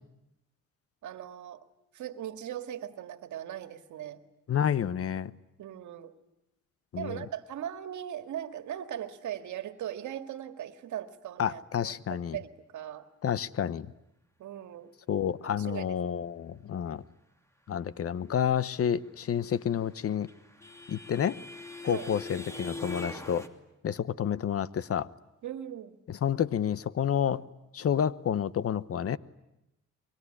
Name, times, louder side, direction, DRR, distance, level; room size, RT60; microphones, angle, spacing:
voice 1, 1.0-1.6 1.9-4.2 5.6-6.1 7.0-13.1 14.4-14.9 15.4-16.0 21.8-22.1 25.4-26.0, right 11 dB, 75° right, 9 dB, 2.0 m, -39 dB
voice 2, 4.5-5.3 6.9-7.2 11.4-12.4 13.2-13.9 15.1-17.0 17.7-20.3 20.9-21.4 21.8-23.4 23.8-25.1 26.1-27.4 27.7-29.2, left 8 dB, 50° left, 17 dB, 0.9 m, -29 dB
sound 1, 19.6-23.5, left 2 dB, 10° left, 2.7 m, -42 dB
25.0 x 23.0 x 10.0 m, 0.88 s
cardioid pair, 90°, 30 cm